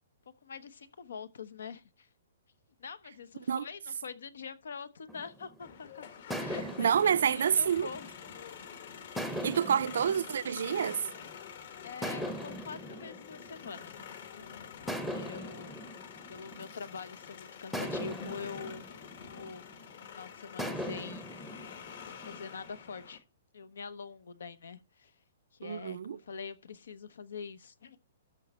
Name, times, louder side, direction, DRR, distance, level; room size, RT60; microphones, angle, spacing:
voice 1, 0.4-2.1 2.8-6.1 6.3-8.1 11.8-14.0 14.3-14.7 15.1-15.7 16.3-18.8 19.2-19.7 20.1-21.7 22.0-23.2 23.5-25.1 25.5-28.0, left 5 dB, 85° left, 1.0 m, -44 dB
sound 1, 5.1-5.7 6.3-8.6 9.2-11.3 12.0-14.3 14.9-17.1 17.7-20.0 20.6-22.8, equal, 5° left, 0.7 m, -41 dB
sound 2, 5.6-23.2, left 7 dB, 55° left, 1.7 m, -48 dB
voice 2, 6.8-7.9 9.3-11.0 25.6-26.2, right 8 dB, 65° right, 0.4 m, -28 dB
13.0 x 5.5 x 4.3 m
hypercardioid pair, 170°, 0 cm